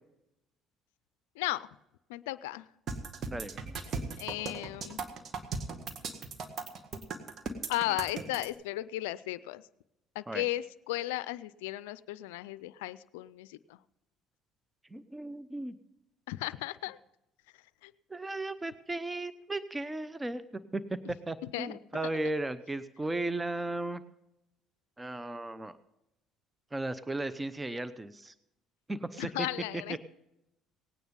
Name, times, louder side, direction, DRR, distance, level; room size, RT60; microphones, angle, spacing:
voice 1, 1.4-1.7 2.1-2.6 3.9-5.0 7.7-9.6 10.2-13.8 16.3-17.0 17.8-17.9 21.5-21.8 29.2-30.0, left 17 dB, 85° left, 16 dB, 0.4 m, -35 dB
sound 1, 2.9-8.5, right 4 dB, 55° right, 1.8 m, -37 dB
voice 2, 3.3-3.6 10.3-10.5 14.9-15.8 18.1-24.0 25.0-25.8 26.7-28.3 28.9-29.5, right 2 dB, 15° right, 14 dB, 0.8 m, -36 dB
18.0 x 9.3 x 5.4 m, 0.88 s
hypercardioid pair, 70°, 0 cm